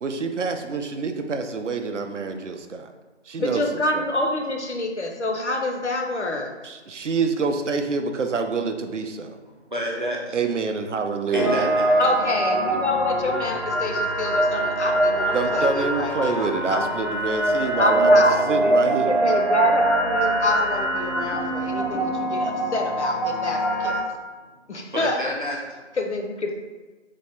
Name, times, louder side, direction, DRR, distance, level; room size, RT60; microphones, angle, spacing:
voice 1, 0.0-2.9 3.3-3.6 3.9-4.1 6.6-9.4 10.3-11.6 15.3-18.1 18.5-19.2, right 4 dB, 85° right, 6 dB, 0.5 m, -26 dB
voice 2, 3.4-6.5 12.0-16.9 17.8-24.0 24.7-25.2 26.0-26.5, left 2 dB, 70° left, 2 dB, 0.7 m, -27 dB
voice 3, 9.5-10.4 11.3-12.0 24.9-25.8, equal, 45° right, -2 dB, 0.7 m, -29 dB
sound 1, 11.3-24.0, right 1 dB, ahead, 0.3 m, -23 dB
4.0 x 2.2 x 3.3 m, 1.3 s
figure-of-eight pair, 170°, 35 cm